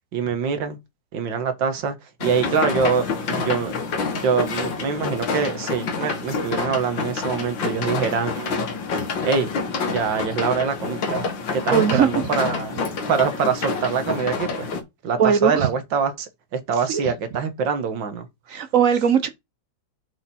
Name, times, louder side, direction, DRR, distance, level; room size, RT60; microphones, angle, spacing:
voice 1, 0.1-0.8 1.1-3.7 4.1-8.7 9.2-9.5 9.9-11.3 11.5-14.7 15.0-18.3, right 6 dB, 85° right, 2.0 m, -24 dB
sound 1, 2.2-14.8, left 4 dB, 90° left, 2.2 m, -27 dB
voice 2, 11.7-12.1 15.2-15.7 16.9-17.0 18.5-19.3, right 7 dB, 55° right, 1.1 m, -19 dB
7.7 x 5.1 x 4.3 m
omnidirectional pair, 2.0 m